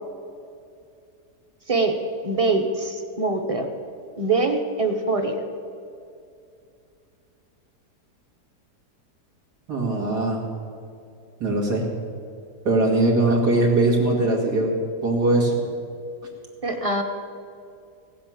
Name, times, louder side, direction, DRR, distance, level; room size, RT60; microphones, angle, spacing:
voice 1, 1.7-2.0 2.2-3.7 4.2-5.4 16.6-17.0, right 3 dB, 25° right, 5 dB, 1.0 m, -23 dB
voice 2, 9.7-10.4 11.4-11.9 12.6-14.7 15.0-15.5, right 2 dB, 80° right, -1 dB, 2.9 m, -20 dB
16.5 x 7.7 x 7.6 m, 2.5 s
omnidirectional pair, 1.7 m